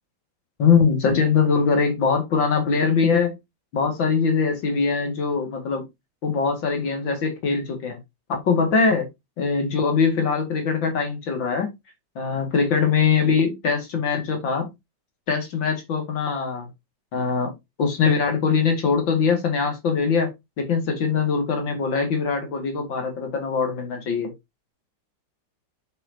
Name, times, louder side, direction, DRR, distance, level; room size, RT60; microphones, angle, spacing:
voice 1, 0.6-3.3 3.7-5.8 6.2-8.0 8.3-9.1 9.4-11.7 12.2-14.7 15.3-16.7 17.1-17.5 17.8-20.3 20.6-24.3, left 5 dB, 90° left, 2.9 m, -22 dB
7.5 x 6.6 x 2.8 m
omnidirectional pair, 2.0 m